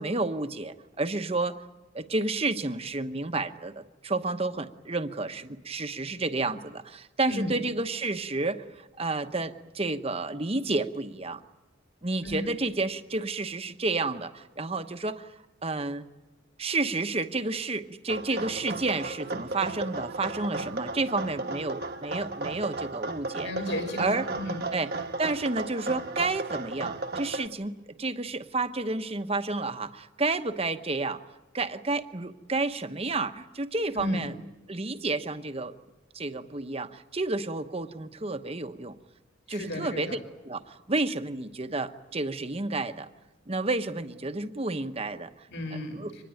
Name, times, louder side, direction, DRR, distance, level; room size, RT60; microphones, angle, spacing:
voice 1, 0.0-1.6 1.9-11.4 12.0-15.3 15.6-16.1 16.6-23.5 24.0-24.2 24.7-24.9 25.2-31.2 31.5-34.3 34.7-35.7 36.1-38.9 39.5-40.2 40.4-43.1 43.5-45.3 45.9-46.1, right 3 dB, 30° right, 9 dB, 1.0 m, -30 dB
sound 1, 18.1-27.5, right 2 dB, 55° right, 1.3 m, -35 dB
voice 2, 23.4-24.6 33.9-34.2 39.5-40.2 45.5-46.0, left 1 dB, 65° left, 4 dB, 6.0 m, -33 dB
25.0 x 20.0 x 9.0 m, 1.1 s
head